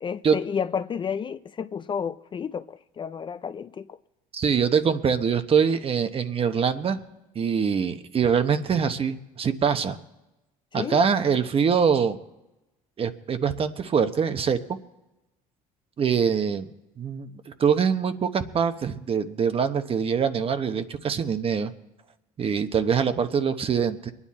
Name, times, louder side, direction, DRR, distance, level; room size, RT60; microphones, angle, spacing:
voice 1, 0.0-4.0 10.7-11.0, left 7 dB, 30° left, 0.5 m, -31 dB
voice 2, 4.3-7.0 7.3-10.0 10.7-12.2 13.0-14.6 16.0-16.7 17.0-21.7 22.4-24.1, right 6 dB, 40° right, 1.0 m, -24 dB
23.0 x 9.8 x 4.3 m
supercardioid pair, 90°, 15 cm